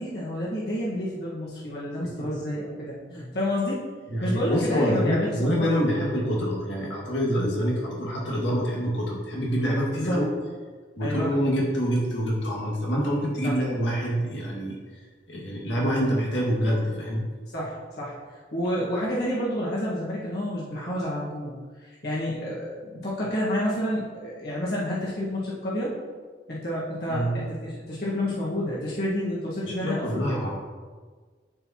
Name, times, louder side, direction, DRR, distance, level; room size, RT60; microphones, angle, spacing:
voice 1, 0.0-3.8 4.2-6.1 9.9-10.2 11.0-11.3 13.4-13.5 17.5-18.1 18.5-21.5 21.8-25.9 26.5-30.4, left 1 dB, 60° left, -7 dB, 1.6 m, -29 dB
voice 2, 4.1-10.3 11.0-14.8 15.3-17.2 27.1-27.4 29.7-30.6, equal, 90° left, -4 dB, 2.1 m, -26 dB
11.0 x 4.6 x 3.0 m, 1.5 s
head